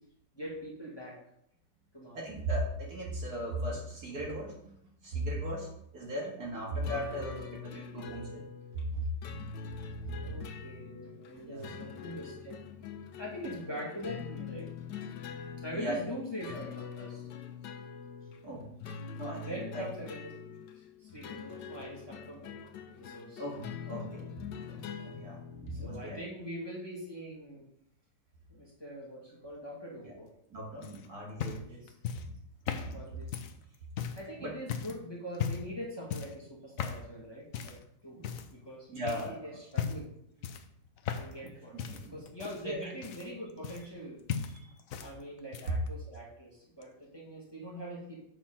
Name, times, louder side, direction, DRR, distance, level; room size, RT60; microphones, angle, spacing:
voice 1, 0.3-1.2 1.9-2.2 10.2-12.6 13.2-14.7 15.6-17.2 19.4-20.3 21.0-23.4 25.7-27.6 28.5-30.3 31.5-31.9 32.9-33.3 34.2-37.8 38.0-38.2 38.5-40.0 41.2-41.8 42.1-44.2 45.0-48.2, equal, 15° left, -4 dB, 1.6 m, -43 dB
voice 2, 2.1-4.7 5.0-8.4 8.7-9.0 11.4-11.6 15.7-16.0 16.5-16.6 18.4-18.7 19.1-19.8 23.4-26.2 30.5-31.8 32.8-33.2 34.4-34.5 38.2-38.3 38.9-39.3 41.4-42.2 42.6-42.8 44.5-44.7, right 1 dB, 60° right, -2 dB, 2.4 m, -38 dB
sound 1, 6.8-26.0, left 6 dB, 80° left, 1.4 m, -44 dB
sound 2, 30.8-34.3 34.7-35.0 35.3-35.8 36.1-36.4 36.8-37.1 37.5-37.8 38.2-38.7 39.1-39.3 39.7-40.1 40.4-41.5 41.8-44.0 44.3-45.1 45.4-45.9 46.8-46.9, left 7 dB, 60° left, 0.9 m, -37 dB
7.6 x 4.4 x 5.7 m, 0.73 s
omnidirectional pair, 1.9 m